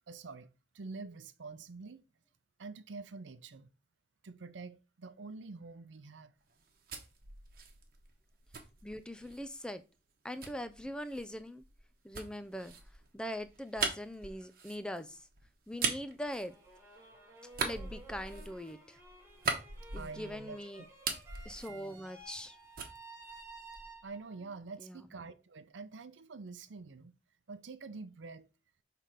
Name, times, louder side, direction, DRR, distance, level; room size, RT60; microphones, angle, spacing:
voice 1, 0.1-0.5 0.7-2.0 2.6-3.7 4.2-6.3 19.9-20.9 24.0-27.2 27.5-28.5, right 4 dB, 80° right, 0.6 m, -47 dB
sound 1, 6.5-9.5 10.4-17.1 17.5-20.5 20.8-22.5 22.8-24.1, right 5 dB, 50° right, 1.1 m, -40 dB
voice 2, 8.8-9.8 10.2-11.6 12.0-12.7 13.1-15.3 15.7-16.5 17.6-19.0 19.9-20.8 21.4-22.6 24.8-25.0, equal, 5° left, 0.4 m, -41 dB
sound 2, 16.2-24.4, right 2 dB, 15° right, 1.3 m, -54 dB
5.8 x 3.4 x 4.9 m
head